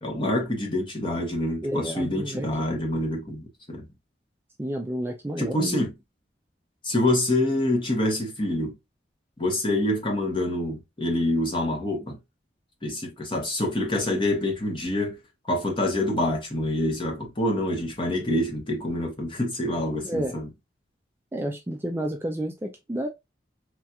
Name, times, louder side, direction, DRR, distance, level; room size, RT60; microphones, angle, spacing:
voice 1, 0.0-3.9 5.4-5.9 6.8-8.8 9.4-12.2 12.8-15.2 15.5-20.5, left 1 dB, 25° left, 0.9 m, -26 dB
voice 2, 1.6-2.8 4.6-5.8 20.0-20.4 21.3-23.1, right 1 dB, 10° right, 0.3 m, -30 dB
3.2 x 2.3 x 2.7 m
head